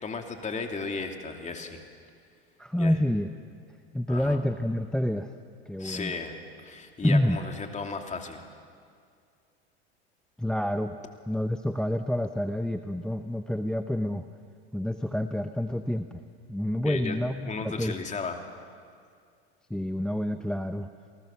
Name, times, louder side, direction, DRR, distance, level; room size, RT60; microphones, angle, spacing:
voice 1, 0.0-1.8 2.8-3.0 4.1-4.4 5.8-8.4 16.8-17.2 17.4-18.4, left 4 dB, 20° left, 4 dB, 2.8 m, -35 dB
voice 2, 2.6-3.3 3.9-5.3 5.7-6.1 7.0-7.4 10.4-10.9 11.3-14.3 14.7-16.2 16.5-18.0 19.7-20.9, left 1 dB, ahead, 8 dB, 0.8 m, -28 dB
29.0 x 19.0 x 7.2 m, 2.2 s
hypercardioid pair, 100°, 32 cm